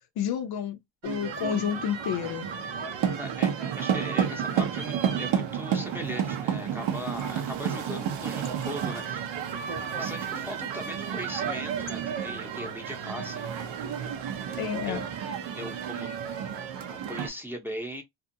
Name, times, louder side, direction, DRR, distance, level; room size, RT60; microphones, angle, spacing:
voice 1, 0.2-0.8 1.0-2.5 14.6-15.0, left 8 dB, 55° left, 0.5 m, -30 dB
sound 1, 1.0-17.3, right 8 dB, 80° right, 0.8 m, -31 dB
voice 2, 3.1-9.3 9.7-15.0 15.5-18.0, equal, 5° right, 0.7 m, -40 dB
2.6 x 2.4 x 2.6 m
cardioid pair, 105°, 44 cm